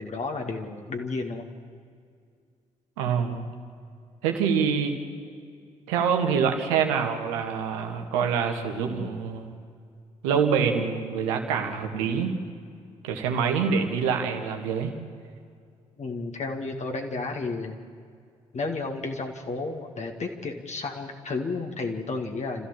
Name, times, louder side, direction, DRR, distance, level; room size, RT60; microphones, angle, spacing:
voice 1, 0.0-1.5 16.0-17.8 18.5-22.7, left 3 dB, 40° left, 3 dB, 2.2 m, -32 dB
voice 2, 3.0-3.5 4.2-5.0 5.9-9.5 10.2-12.3 13.0-14.9, right 6 dB, 75° right, 4 dB, 1.8 m, -25 dB
28.0 x 14.5 x 7.4 m, 2.2 s
figure-of-eight pair, 40°, 17 cm